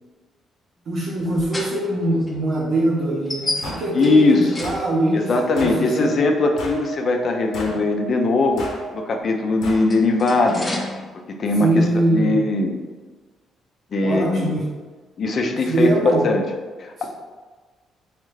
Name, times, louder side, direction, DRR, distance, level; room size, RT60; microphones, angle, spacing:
voice 1, 0.9-5.3 5.6-6.1 11.6-12.3 14.0-14.6 15.7-16.3 17.0-17.1, right 1 dB, 70° right, -8 dB, 0.8 m, -22 dB
sound 1, 1.1-5.3 6.5-6.6 9.5-11.1, left 1 dB, 15° left, 0.7 m, -32 dB
sound 2, 3.6-3.8 4.6-4.8 5.6-5.8 6.6-6.9 7.5-7.8 8.6-8.8 9.6-9.8, left 1 dB, 85° left, 0.8 m, -33 dB
voice 2, 3.9-4.5 5.1-10.7 11.3-12.8 13.9-14.5 15.2-16.4 16.8-17.0, left 3 dB, 50° left, 4 dB, 0.5 m, -20 dB
sound 3, 4.4-9.2, right 5 dB, 55° right, 0.4 m, -36 dB
3.6 x 3.2 x 3.2 m, 1.4 s
cardioid pair, 90°, 0 cm